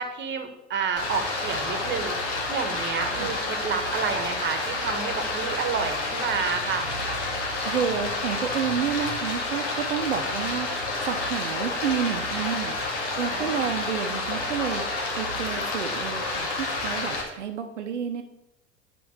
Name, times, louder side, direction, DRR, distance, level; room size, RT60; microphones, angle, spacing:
voice 1, 0.0-6.9 13.3-13.7, right 6 dB, 30° right, 8 dB, 1.2 m, -30 dB
Stream, 1.0-17.2, left 2 dB, 60° left, 2.1 m, -29 dB
voice 2, 7.6-10.7 11.0-12.7 13.2-14.8 15.2-18.2, right 7 dB, 75° right, 6 dB, 0.8 m, -30 dB
6.0 x 5.2 x 6.3 m, 0.87 s
figure-of-eight pair, 75°, 36 cm